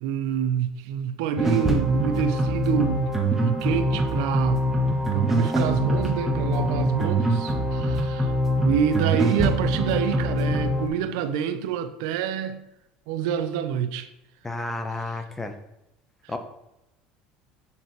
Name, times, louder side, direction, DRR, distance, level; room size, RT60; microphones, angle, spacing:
voice 1, 0.0-4.6 5.1-8.3 8.6-12.6 13.1-14.1, right 8 dB, 85° right, 0.8 m, -27 dB
sound 1, 1.4-10.9, equal, 10° right, 1.3 m, -24 dB
voice 2, 14.4-15.5 16.3-16.4, left 2 dB, 10° left, 0.9 m, -31 dB
8.3 x 6.9 x 3.2 m
cardioid pair, 130°, 3 cm